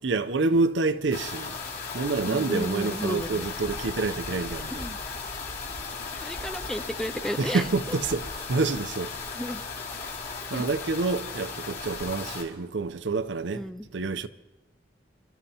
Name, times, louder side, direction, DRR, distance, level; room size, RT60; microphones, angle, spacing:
voice 1, 0.0-1.6 1.9-4.9 7.4-9.2 10.5-13.7 13.9-14.3, right 3 dB, 70° right, 0.6 m, -27 dB
sound 1, 1.1-12.4, left 4 dB, 55° left, 2.6 m, -36 dB
voice 2, 2.3-3.5 4.7-5.0 6.2-8.0 9.3-9.6 10.5-10.7 13.5-13.9, equal, 5° left, 0.3 m, -33 dB
26.5 x 12.5 x 2.8 m
head